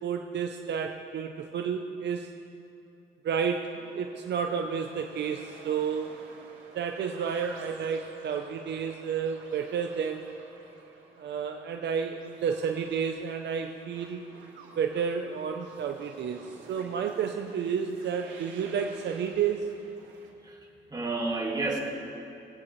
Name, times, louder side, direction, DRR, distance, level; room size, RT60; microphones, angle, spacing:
voice 1, 0.0-2.3 3.2-6.2 6.7-10.4 11.2-14.2 14.8-19.7, right 7 dB, 60° right, 4 dB, 0.6 m, -31 dB
sound 1, 3.7-20.3, right 3 dB, 80° right, 2.4 m, -51 dB
voice 2, 20.4-21.8, right 3 dB, 20° right, -2 dB, 2.0 m, -31 dB
19.5 x 8.5 x 3.2 m, 2.7 s
cardioid pair, 90°, 20 cm